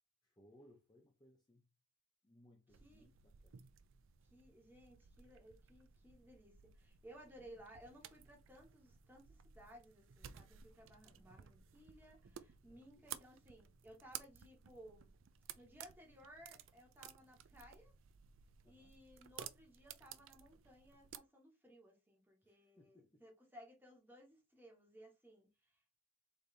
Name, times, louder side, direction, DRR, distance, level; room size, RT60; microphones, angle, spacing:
voice 1, 0.2-1.6 2.2-3.6 7.4-7.6 11.0-11.4 12.6-13.1 18.6-19.0 22.4-23.3, left 1 dB, 20° left, 0.7 m, -67 dB
sound 1, 2.7-21.2, right 9 dB, 60° right, 0.4 m, -56 dB
voice 2, 4.2-15.1 15.5-17.9 18.6-26.0, equal, 10° right, 1.4 m, -60 dB
4.2 x 3.4 x 3.3 m
head